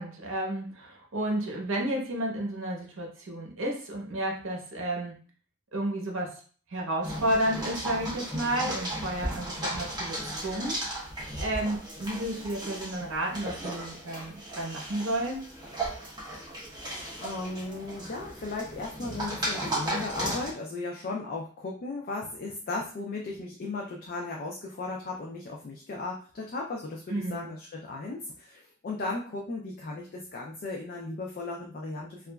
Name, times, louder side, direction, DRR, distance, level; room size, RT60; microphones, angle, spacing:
voice 1, 0.0-5.1 5.7-6.3 6.7-10.8 11.4-15.4 27.1-27.5, right 1 dB, 60° right, 0 dB, 0.7 m, -31 dB
sound 1, 7.0-20.5, right 1 dB, 20° right, 0.8 m, -36 dB
voice 2, 17.2-32.3, left 3 dB, 45° left, -1 dB, 0.3 m, -36 dB
2.9 x 2.4 x 2.2 m, 0.43 s
head